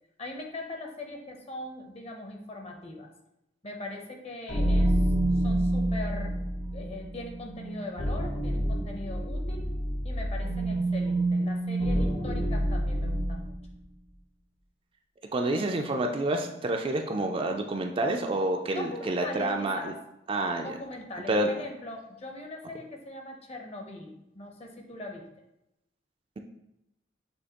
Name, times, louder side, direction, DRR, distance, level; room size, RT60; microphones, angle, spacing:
voice 1, 0.2-3.1 3.6-5.0 5.2-6.3 6.7-9.7 10.0-13.6 18.7-20.0 20.6-25.3, left 2 dB, 35° left, 2 dB, 0.7 m, -41 dB
sound 1, 4.5-13.7, right 1 dB, 75° left, 1.0 m, -28 dB
voice 2, 15.3-19.9 20.3-20.7 21.3-21.5, right 2 dB, 30° right, 3 dB, 0.4 m, -28 dB
6.2 x 2.8 x 2.9 m, 0.86 s
head